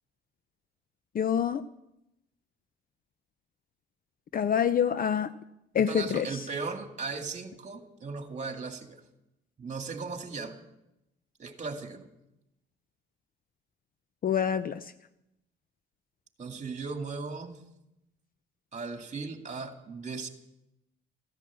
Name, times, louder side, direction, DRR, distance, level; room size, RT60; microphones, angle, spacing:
voice 1, 1.1-1.6 4.3-5.3 5.7-6.4 14.2-14.9, left 8 dB, 45° left, 13 dB, 0.6 m, -26 dB
voice 2, 5.8-9.0 9.6-10.6 11.4-12.1 16.4-17.6 18.7-20.3, right 4 dB, 35° right, 5 dB, 2.3 m, -37 dB
14.5 x 11.0 x 7.3 m, 0.88 s
cardioid pair, 90°, 20 cm